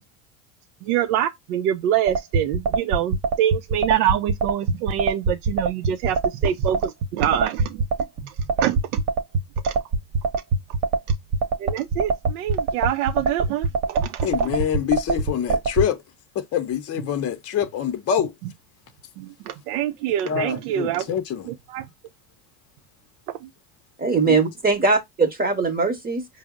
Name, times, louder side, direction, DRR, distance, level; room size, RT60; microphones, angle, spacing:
voice 1, 0.9-6.2 6.4-7.7 8.6-8.8 9.6-9.7 11.6-14.3 19.2-21.0 21.7-21.8, right 11 dB, 85° right, 0.5 m, -25 dB
sound 1, 2.1-15.9, right 3 dB, 60° right, 0.9 m, -22 dB
voice 2, 14.2-16.0 16.3-18.3 20.2-21.5 24.3-24.4, left 9 dB, 35° left, 0.7 m, -25 dB
voice 3, 24.0-26.3, right 4 dB, 20° right, 0.9 m, -21 dB
5.0 x 2.1 x 3.5 m
supercardioid pair, 95°, 43 cm